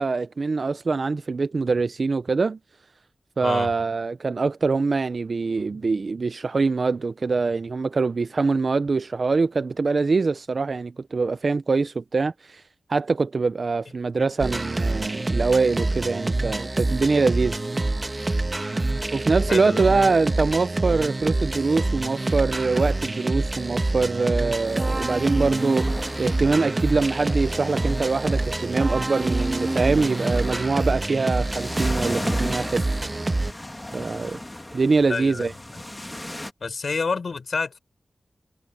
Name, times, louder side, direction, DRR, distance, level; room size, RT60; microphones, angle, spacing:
voice 1, 0.0-2.6 3.4-12.6 12.9-17.6 19.1-25.9 26.2-32.9 33.9-34.4 34.7-35.5, right 4 dB, 60° right, 0.6 m, -24 dB
voice 2, 3.4-3.7 19.5-19.8 35.1-35.5 36.6-37.8, left 4 dB, 75° left, 6.7 m, -28 dB
sound 1, 14.4-33.5, right 2 dB, 35° right, 1.8 m, -26 dB
sound 2, 24.7-36.5, left 1 dB, 15° left, 2.2 m, -37 dB
wide cardioid pair, 75°, 0 cm